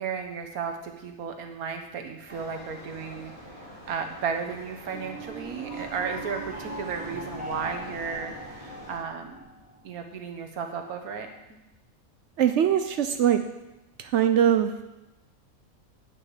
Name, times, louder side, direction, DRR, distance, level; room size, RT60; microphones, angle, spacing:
voice 1, 0.0-3.3 3.9-9.4 9.8-11.6, right 6 dB, 85° right, 5 dB, 1.5 m, -34 dB
sound 1, 2.3-9.0, equal, 25° left, 2.5 m, -45 dB
sound 2, 4.8-9.9, right 1 dB, 5° right, 1.2 m, -40 dB
voice 2, 12.4-13.4 14.0-14.7, right 9 dB, 65° right, 9 dB, 0.7 m, -22 dB
9.2 x 5.3 x 6.9 m, 0.97 s
omnidirectional pair, 1.5 m